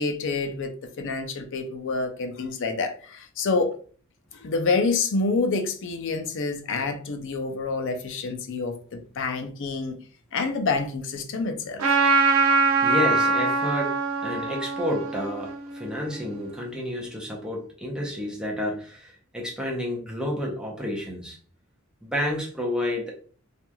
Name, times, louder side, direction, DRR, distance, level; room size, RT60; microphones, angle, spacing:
voice 1, 0.0-3.7 4.3-10.0 10.3-11.9, left 3 dB, 60° left, 0.5 m, -27 dB
Trumpet, 11.8-16.5, right 4 dB, 75° right, 0.8 m, -23 dB
voice 2, 12.8-14.0 14.2-21.4 22.0-23.2, left 1 dB, 5° right, 0.6 m, -30 dB
2.9 x 2.4 x 2.2 m
head